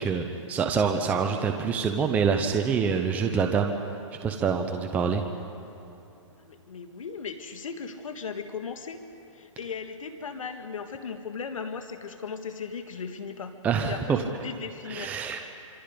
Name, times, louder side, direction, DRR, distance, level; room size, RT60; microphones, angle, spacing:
voice 1, 0.0-3.8 4.2-5.2 13.6-14.2 14.9-15.4, right 6 dB, 10° right, 4 dB, 0.7 m, -26 dB
voice 2, 6.4-9.0 9.3-13.6 13.9-15.1, left 5 dB, 85° left, 7 dB, 1.7 m, -37 dB
26.5 x 26.0 x 5.2 m, 2.7 s
hypercardioid pair, 160°, 17 cm